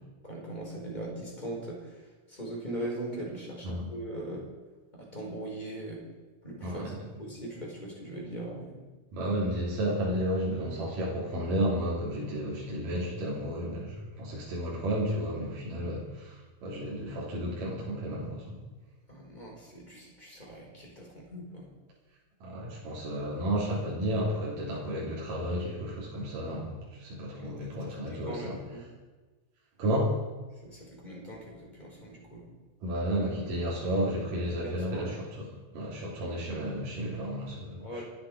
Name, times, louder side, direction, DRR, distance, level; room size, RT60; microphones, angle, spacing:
voice 1, 0.0-4.4 4.9-6.0 6.4-6.9 7.2-8.8 19.1-21.7 27.3-28.8 30.6-32.5 34.6-35.1 37.8-38.0, right 1 dB, 10° left, -3 dB, 4.9 m, -40 dB
voice 2, 6.6-6.9 9.1-18.6 22.4-26.7 27.0-28.6 29.8-30.3 32.8-35.5 35.7-38.0, equal, 60° right, -5 dB, 5.0 m, -32 dB
27.5 x 9.9 x 5.0 m, 1.3 s
omnidirectional pair, 4.3 m